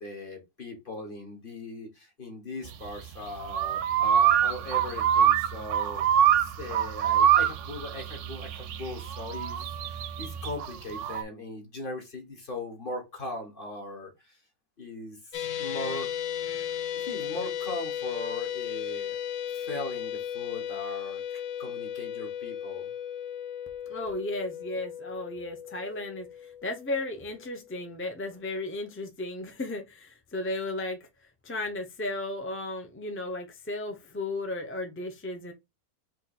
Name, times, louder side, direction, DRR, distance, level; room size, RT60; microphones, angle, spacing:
voice 1, 0.0-14.4 14.8-16.1 16.9-19.2 19.5-22.9, left 2 dB, 35° left, 1.6 m, -39 dB
sound 1, 2.7-11.2, right 9 dB, 65° right, 0.8 m, -25 dB
sound 2, 15.3-27.7, left 9 dB, 65° left, 0.9 m, -35 dB
voice 2, 23.9-31.0 31.4-35.5, left 2 dB, 15° left, 0.4 m, -34 dB
3.8 x 3.1 x 4.1 m
omnidirectional pair, 1.6 m